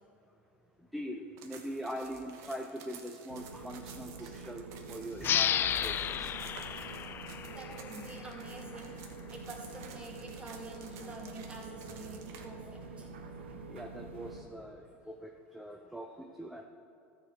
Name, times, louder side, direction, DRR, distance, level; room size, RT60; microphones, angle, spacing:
voice 1, 0.9-4.6 4.9-6.3 13.7-16.6, equal, ahead, 2 dB, 0.6 m, -42 dB
sound 1, 1.4-12.4, right 7 dB, 55° right, 1.3 m, -53 dB
sound 2, 3.3-14.4, right 4 dB, 85° right, 1.0 m, -46 dB
sound 3, 5.2-8.5, left 10 dB, 35° left, 0.4 m, -33 dB
voice 2, 7.5-9.1 9.3-13.1, right 2 dB, 15° right, -1 dB, 2.4 m, -47 dB
13.5 x 4.8 x 6.6 m, 2.6 s
hypercardioid pair, 95°, 6 cm